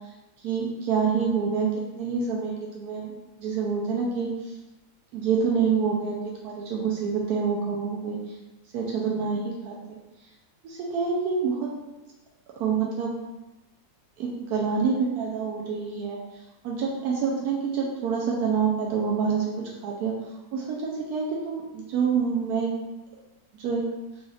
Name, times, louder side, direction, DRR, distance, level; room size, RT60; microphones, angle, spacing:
voice 1, 0.4-1.7 2.0-3.1 3.4-4.3 5.1-8.2 8.7-9.8 10.6-11.7 12.6-13.1 14.2-16.2 16.6-19.5 19.8-20.1 20.5-22.7 23.5-23.8, right 5 dB, 80° right, -3 dB, 1.1 m, -27 dB
4.0 x 3.3 x 2.3 m, 1.0 s
omnidirectional pair, 1.7 m